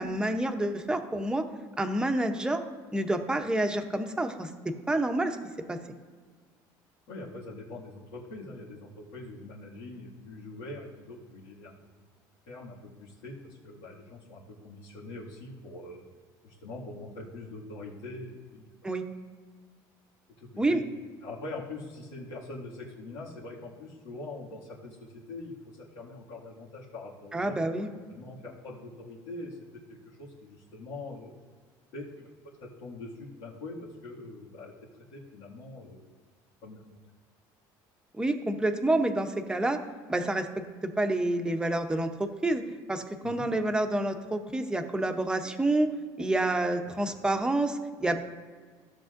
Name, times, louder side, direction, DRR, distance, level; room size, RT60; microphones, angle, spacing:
voice 1, 0.0-1.5 1.8-2.6 2.9-4.5 4.9-5.4 5.7-5.8 18.8-19.0 20.6-20.8 27.3-27.9 38.2-39.8 40.1-40.5 40.8-42.6 42.9-45.9 46.2-48.2, right 2 dB, 10° right, 6 dB, 0.8 m, -28 dB
voice 2, 7.1-11.7 12.5-16.0 16.4-18.6 20.4-20.8 21.2-25.5 25.9-29.6 29.9-31.3 31.9-32.3 32.8-34.7 35.1-36.1 36.6-36.8 43.2-43.5 46.8-47.0, left 2 dB, 90° left, -9 dB, 2.0 m, -43 dB
15.5 x 7.5 x 2.6 m, 1.5 s
cardioid pair, 130°, 9 cm